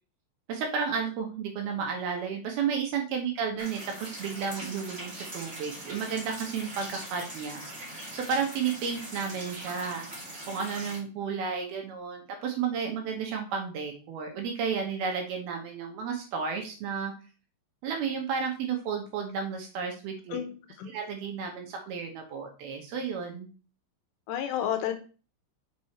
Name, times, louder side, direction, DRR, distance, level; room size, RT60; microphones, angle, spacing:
voice 1, 0.5-7.6 8.1-10.1 10.5-17.1 17.8-20.4 20.9-23.5, right 6 dB, 70° right, 2 dB, 2.7 m, -32 dB
sound 1, 3.6-11.0, right 1 dB, 25° right, 1.7 m, -41 dB
voice 2, 24.3-24.9, left 10 dB, 80° left, 8 dB, 2.8 m, -30 dB
6.2 x 6.1 x 4.3 m, 0.36 s
omnidirectional pair, 5.2 m